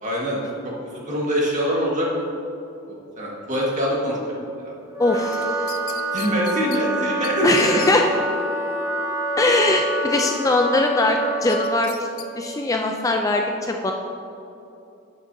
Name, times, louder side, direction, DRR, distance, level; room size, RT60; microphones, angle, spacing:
voice 1, 0.0-2.1 2.9-4.2 4.6-4.7 6.1-7.7, equal, 35° right, -4 dB, 1.8 m, -24 dB
Wind instrument woodwind instrument, 4.9-12.0, right 1 dB, 15° right, 0.9 m, -27 dB
voice 2, 5.0-5.7 7.4-8.1 9.4-12.1 12.4-13.9, left 2 dB, 15° left, 3 dB, 0.3 m, -21 dB
sound 1, 5.3-6.8 7.2-7.3 7.6-7.9 11.5-12.3 12.7-12.8, left 12 dB, 85° left, 0.5 m, -37 dB
10.0 x 8.5 x 2.7 m, 2.8 s
head